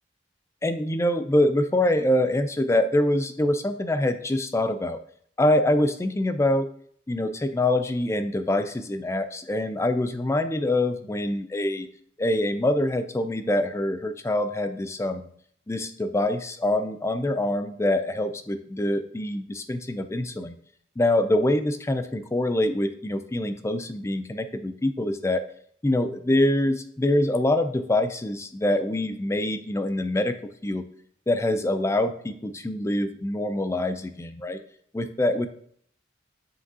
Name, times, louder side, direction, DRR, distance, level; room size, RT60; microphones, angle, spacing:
voice 1, 0.6-5.0 5.4-6.7 7.1-11.9 12.2-15.3 15.7-20.5 21.0-25.4 25.8-30.3 30.6-30.9 31.3-34.6 34.9-35.5, left 1 dB, 15° left, 10 dB, 0.4 m, -25 dB
7.4 x 5.9 x 2.7 m, 0.62 s
head